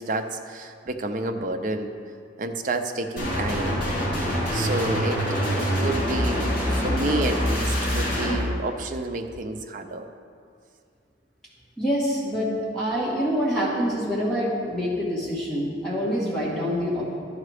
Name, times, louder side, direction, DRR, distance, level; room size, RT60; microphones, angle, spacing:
voice 1, 0.0-1.9 2.4-3.8 4.5-6.5 6.8-10.1, right 2 dB, 45° right, 6 dB, 0.5 m, -30 dB
sound 1, 3.2-8.3, equal, 50° left, 2.5 m, -25 dB
voice 2, 11.8-17.1, equal, 5° left, -8 dB, 2.0 m, -26 dB
12.0 x 4.9 x 4.9 m, 2.3 s
head